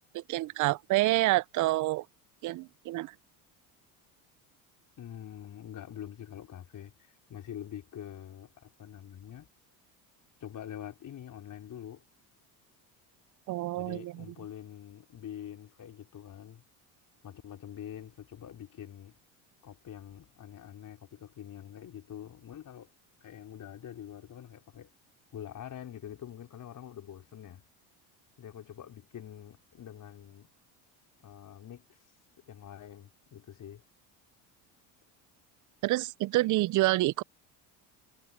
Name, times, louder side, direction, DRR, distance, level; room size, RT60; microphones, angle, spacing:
voice 1, 0.1-2.1 2.4-3.1 13.5-14.3 35.8-37.2, right 18 dB, 45° right, 0.4 m, -28 dB
voice 2, 5.0-9.5 10.4-12.0 13.7-16.7 17.2-19.2 19.6-22.9 23.2-24.9 25.3-27.7 28.4-30.5 31.2-32.0 32.4-33.8, left 10 dB, 45° left, 4.4 m, -45 dB
supercardioid pair, 100°, 44 cm